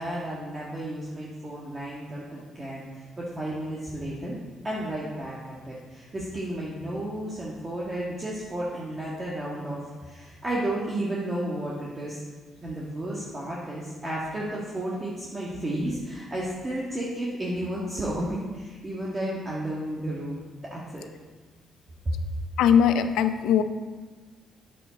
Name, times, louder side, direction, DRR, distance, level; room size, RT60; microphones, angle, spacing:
voice 1, 0.0-4.4 4.6-12.2 12.6-20.4 20.7-21.0, right 1 dB, 25° right, -5 dB, 1.7 m, -32 dB
voice 2, 22.6-23.6, left 8 dB, 90° left, 10 dB, 0.5 m, -20 dB
9.3 x 7.4 x 4.1 m, 1.3 s
cardioid pair, 90°, 0 cm